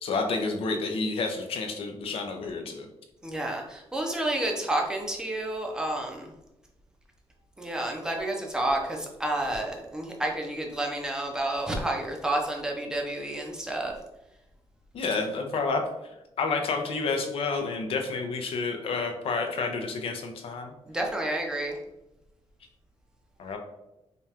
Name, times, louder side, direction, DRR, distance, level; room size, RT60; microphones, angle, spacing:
voice 1, 0.0-2.9 14.9-15.8 16.4-20.7 23.4-23.6, left 4 dB, 65° left, 4 dB, 0.6 m, -29 dB
voice 2, 3.2-6.3 7.6-13.9 20.9-21.8, right 1 dB, 5° right, 0 dB, 0.6 m, -30 dB
5.1 x 2.4 x 2.8 m, 0.92 s
wide cardioid pair, 175°, 11 cm